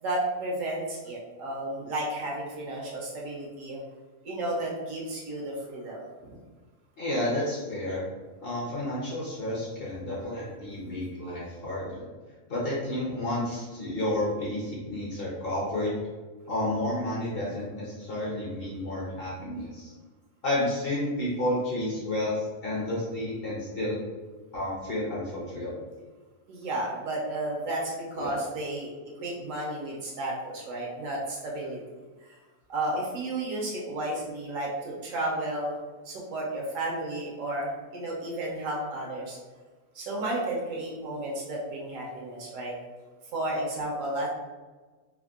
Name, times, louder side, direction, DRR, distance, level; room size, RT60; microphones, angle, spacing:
voice 1, 0.0-3.8 4.2-6.0 26.5-28.9 29.2-31.8 32.2-32.4 32.7-35.8 36.0-39.4 39.9-42.7 43.3-44.3, right 1 dB, 70° right, -3 dB, 1.0 m, -32 dB
voice 2, 7.0-8.0 8.4-12.0 12.5-15.9 16.5-19.9 20.4-24.0 24.5-25.8 28.2-28.4, left 1 dB, 50° left, -6 dB, 0.8 m, -31 dB
3.4 x 2.1 x 2.3 m, 1.3 s
omnidirectional pair, 1.5 m